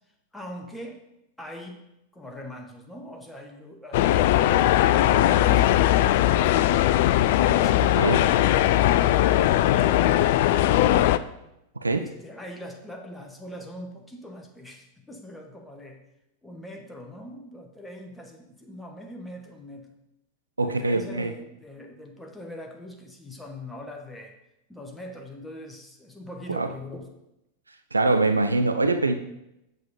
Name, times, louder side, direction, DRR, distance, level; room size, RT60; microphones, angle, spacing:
voice 1, 0.3-1.0 1.4-1.8 2.1-4.5 5.0-6.9 7.5-11.1 11.9-16.0 16.4-19.9 20.6-24.3 24.7-27.1, left 1 dB, 5° left, 2 dB, 1.1 m, -42 dB
sound 1, 3.9-11.2, left 13 dB, 50° left, 0.3 m, -20 dB
voice 2, 7.8-8.2 11.8-12.1 20.6-21.3 26.5-26.7 27.9-29.1, right 2 dB, 80° right, 8 dB, 0.4 m, -23 dB
8.0 x 6.7 x 4.2 m, 0.86 s
figure-of-eight pair, 90°, 0 cm